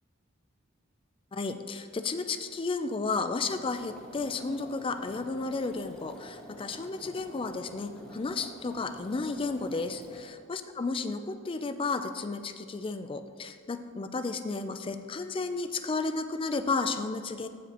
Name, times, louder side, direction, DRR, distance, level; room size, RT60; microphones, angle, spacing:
voice 1, 1.3-17.5, left 3 dB, 25° left, 9 dB, 0.4 m, -33 dB
sound 1, 3.5-10.3, equal, ahead, 1.5 m, -49 dB
14.5 x 5.1 x 2.9 m, 2.1 s
head